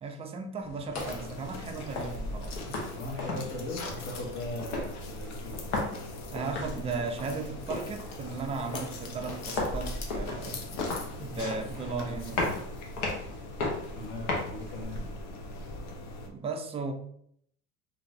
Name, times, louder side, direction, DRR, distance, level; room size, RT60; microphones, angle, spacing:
voice 1, 0.0-2.8 6.3-12.6 16.3-16.9, right 4 dB, 20° right, 5 dB, 0.3 m, -36 dB
sound 1, 0.6-14.8, left 2 dB, 75° left, 1.0 m, -37 dB
sound 2, 0.9-16.3, left 2 dB, 50° left, 0.6 m, -41 dB
voice 2, 2.9-5.6 13.9-15.0 15.5-15.7, left 2 dB, 35° left, 0 dB, 1.0 m, -39 dB
2.6 x 2.5 x 3.2 m, 0.70 s
supercardioid pair, 105°, 34 cm